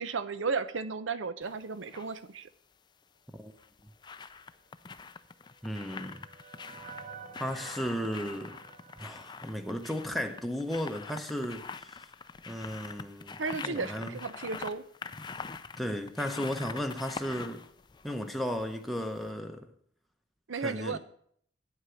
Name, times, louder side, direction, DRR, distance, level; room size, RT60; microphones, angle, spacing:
voice 1, 0.0-2.5 13.4-14.8 20.5-21.0, right 4 dB, 80° right, 0.7 m, -34 dB
sound 1, 1.4-2.1 3.4-18.9 19.2-19.3, left 5 dB, 25° left, 0.4 m, -45 dB
sound 2, 5.2-10.5, right 6 dB, 40° right, 0.6 m, -51 dB
voice 2, 5.6-6.2 7.4-8.6 9.0-12.1 12.5-14.2 15.8-17.7 18.0-19.7 20.6-21.0, equal, ahead, 0.7 m, -35 dB
9.1 x 8.1 x 5.8 m
head